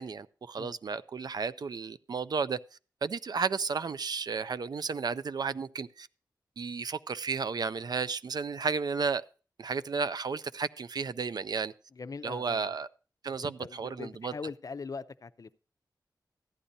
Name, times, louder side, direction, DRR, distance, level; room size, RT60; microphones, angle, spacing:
voice 1, 0.0-2.6 3.0-6.1 6.6-9.2 9.6-11.7 12.2-12.9 13.2-14.3, right 5 dB, 60° right, 0.4 m, -33 dB
voice 2, 11.9-12.7 13.4-15.5, left 4 dB, 50° left, 0.5 m, -41 dB
14.5 x 10.0 x 2.7 m
wide cardioid pair, 90°, 8 cm